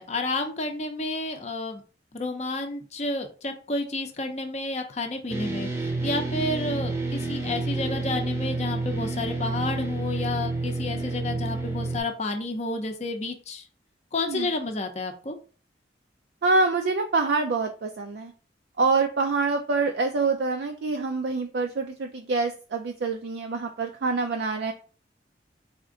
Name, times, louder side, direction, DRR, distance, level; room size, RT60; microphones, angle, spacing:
voice 1, 0.0-1.8 2.1-13.7 14.1-15.4, left 2 dB, 40° left, 4 dB, 0.6 m, -30 dB
sound 1, 5.3-12.0, right 2 dB, 15° right, 0.7 m, -29 dB
voice 2, 16.4-18.3 18.8-24.7, right 3 dB, 65° right, 4 dB, 0.4 m, -26 dB
4.2 x 2.5 x 3.7 m, 0.37 s
head